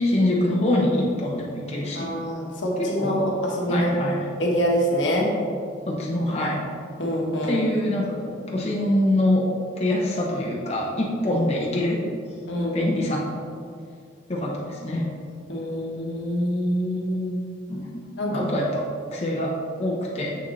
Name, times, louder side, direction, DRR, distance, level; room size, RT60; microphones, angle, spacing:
voice 1, 0.0-2.1 2.8-3.2 3.5-4.2 5.9-6.6 7.5-9.4 9.8-12.0 12.7-13.2 14.3-15.1 17.7-18.8 19.1-20.3, left 1 dB, 35° left, -4 dB, 0.9 m, -25 dB
voice 2, 1.9-3.9 4.4-5.3 7.0-7.6 12.5-12.8 15.5-17.4 18.2-18.4, equal, 75° left, -2 dB, 1.3 m, -25 dB
7.1 x 6.3 x 3.2 m, 2.4 s
head